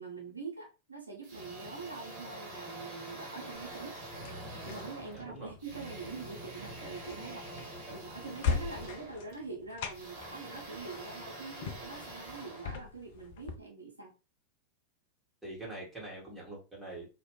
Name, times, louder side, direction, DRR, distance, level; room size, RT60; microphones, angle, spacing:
voice 1, 0.0-4.0 4.6-14.1, right 4 dB, 80° right, 0 dB, 0.8 m, -44 dB
sound 1, 1.2-13.4, right 1 dB, 45° right, 1.2 m, -46 dB
sound 2, 3.6-13.6, left 6 dB, 50° left, 0.5 m, -41 dB
voice 2, 5.1-5.5 7.9-8.0 15.4-17.1, right 2 dB, 5° right, -4 dB, 1.6 m, -44 dB
2.9 x 2.5 x 3.1 m, 0.30 s
figure-of-eight pair, 90°, 0 cm